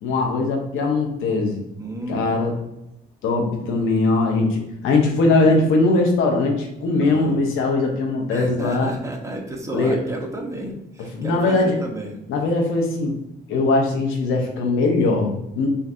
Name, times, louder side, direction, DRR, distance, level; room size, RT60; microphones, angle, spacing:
voice 1, 0.0-1.6 2.1-2.6 3.2-8.9 9.7-10.0 11.2-11.8 12.3-13.1 13.5-15.7, left 3 dB, 90° left, 1 dB, 0.8 m, -20 dB
voice 2, 1.8-2.6 7.0-7.4 8.3-12.2, right 1 dB, 15° right, 1 dB, 1.0 m, -32 dB
5.7 x 2.6 x 2.5 m, 0.87 s
cardioid pair, 90°, 20 cm